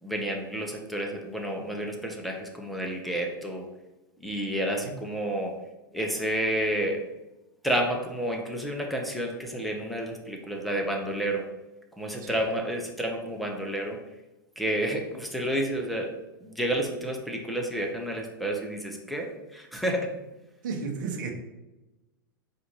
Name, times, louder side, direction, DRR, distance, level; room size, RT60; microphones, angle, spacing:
voice 1, 0.0-3.7 4.2-5.6 5.9-7.0 7.6-11.5 12.0-14.0 14.6-16.1 16.4-20.1, right 1 dB, ahead, 1 dB, 0.7 m, -30 dB
voice 2, 20.6-21.3, right 5 dB, 60° right, 2 dB, 0.8 m, -32 dB
4.3 x 2.5 x 4.3 m, 1.0 s
figure-of-eight pair, 95°, 12 cm